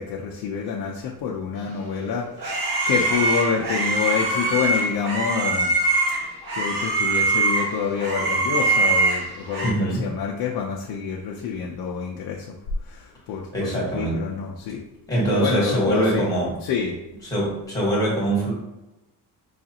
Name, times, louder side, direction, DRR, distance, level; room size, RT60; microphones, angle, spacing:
voice 1, 0.0-5.7 6.5-12.5 12.9-14.8 15.3-16.2 16.6-17.0, left 6 dB, 70° left, -1 dB, 0.5 m, -27 dB
sound 1, 1.8-9.7, right 2 dB, 80° right, 1.4 m, -23 dB
voice 2, 9.6-10.1 13.5-14.2 15.1-16.6 17.2-18.5, right 1 dB, 10° left, -5 dB, 1.2 m, -23 dB
4.8 x 2.4 x 2.7 m, 0.98 s
cardioid pair, 170°, 39 cm